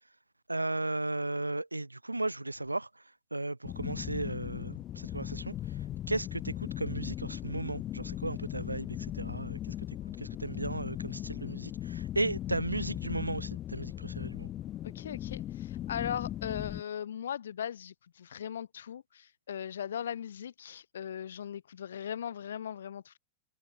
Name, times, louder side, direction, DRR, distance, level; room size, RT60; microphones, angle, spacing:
voice 1, 0.5-2.9 3.3-5.5 6.1-9.7 10.2-14.5, right 2 dB, 85° right, 1.9 m, -35 dB
sound 1, 3.6-16.8, left 12 dB, 30° left, 1.0 m, -38 dB
voice 2, 14.8-23.2, left 9 dB, 65° left, 1.2 m, -39 dB
figure-of-eight pair, 90°, 0 cm